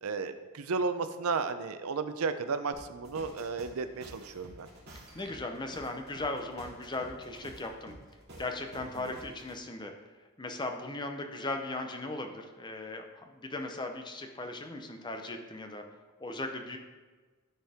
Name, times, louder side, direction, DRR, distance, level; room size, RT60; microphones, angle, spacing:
voice 1, 0.0-4.7 9.0-9.1, right 4 dB, 80° right, 10 dB, 0.5 m, -33 dB
sound 1, 2.7-9.6, right 1 dB, 50° right, 2.5 m, -51 dB
voice 2, 5.1-7.9 8.4-9.9 10.4-15.8 16.2-16.8, left 2 dB, 20° left, 5 dB, 0.6 m, -38 dB
12.5 x 4.5 x 3.5 m, 1.4 s
head